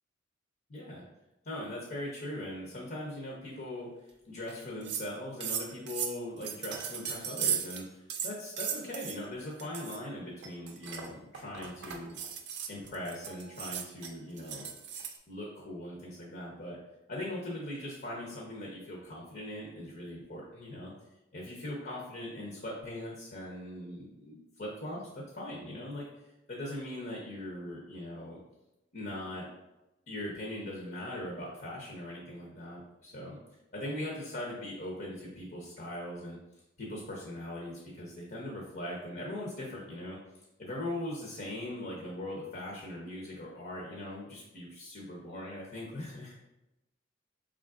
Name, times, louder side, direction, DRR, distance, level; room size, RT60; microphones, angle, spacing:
voice 1, 0.7-1.0 1.4-12.2 12.7-14.7 15.3-16.8 17.1-20.9 21.3-26.0 26.5-28.4 28.9-29.5 30.1-33.4 33.7-36.4 36.8-40.2 40.6-46.3, left 1 dB, 50° left, -3 dB, 0.8 m, -40 dB
sound 1, 4.5-4.6 4.8-5.1 5.4-7.8 8.1-9.2 9.6-10.0 10.4-15.2, right 8 dB, 60° right, 0.5 m, -36 dB
5.0 x 3.7 x 2.4 m, 0.97 s
head